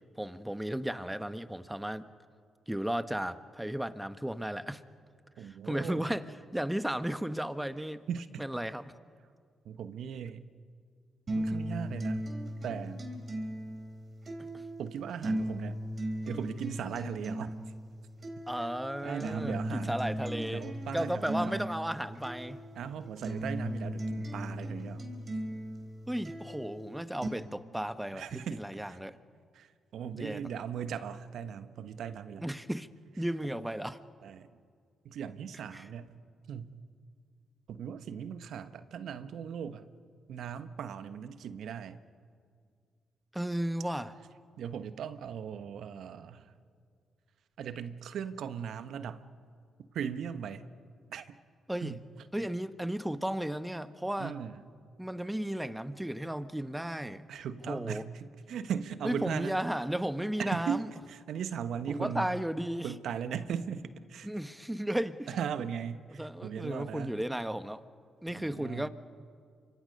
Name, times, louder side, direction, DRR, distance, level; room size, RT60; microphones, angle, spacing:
voice 1, 0.2-2.0 2.7-4.8 5.4-6.2 6.5-8.0 8.4-8.9 11.5-11.6 14.5-14.6 18.5-20.6 20.9-22.6 26.1-29.2 30.1-30.4 32.4-32.9 33.2-34.0 35.7-35.9 43.3-44.1 51.7-51.9 52.3-54.3 55.0-57.2 57.6-58.0 59.0-60.9 61.9-62.9 64.2-65.4 66.1-67.8 68.2-68.9, right 1 dB, 10° right, 1.4 m, -34 dB
voice 2, 5.4-6.1 8.1-8.4 9.6-10.5 11.3-12.3 12.6-13.0 14.8-15.8 16.3-17.6 19.0-20.0 20.5-21.6 22.8-25.0 28.1-28.6 28.9-29.0 29.5-32.4 34.2-34.5 35.0-36.1 36.5-36.8 37.7-39.9 40.3-42.0 44.6-46.5 47.6-49.3 49.9-50.6 51.1-51.3 51.8-52.0 54.2-54.7 57.3-59.6 60.4-62.3 62.8-64.3 65.3-67.2 68.3-68.9, right 8 dB, 70° right, 1.1 m, -38 dB
sound 1, 11.3-27.3, right 1 dB, 45° right, 4.7 m, -37 dB
30.0 x 25.5 x 5.4 m
hypercardioid pair, 45°, 0 cm